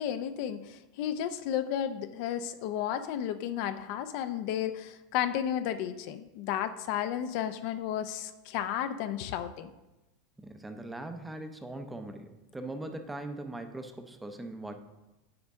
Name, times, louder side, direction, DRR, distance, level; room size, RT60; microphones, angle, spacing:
voice 1, 0.0-9.7, left 10 dB, 55° left, 10 dB, 0.5 m, -33 dB
voice 2, 10.4-14.8, right 2 dB, 5° right, 7 dB, 0.6 m, -40 dB
9.4 x 6.3 x 3.6 m, 1.0 s
supercardioid pair, 150°, 0 cm